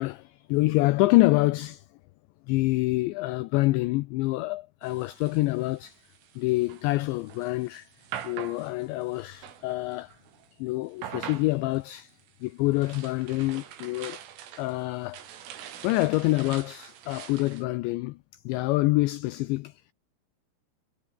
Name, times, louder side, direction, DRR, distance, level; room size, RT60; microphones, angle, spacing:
voice 1, 0.0-1.9 2.5-6.0 6.4-7.9 8.2-10.1 10.6-14.2 14.6-15.2 15.8-18.2 18.5-19.7, left 20 dB, 85° left, 2.5 m, -26 dB
sound 1, 4.8-10.5 10.9-17.6, right 10 dB, 75° right, 5.3 m, -44 dB
omnidirectional pair, 6.0 m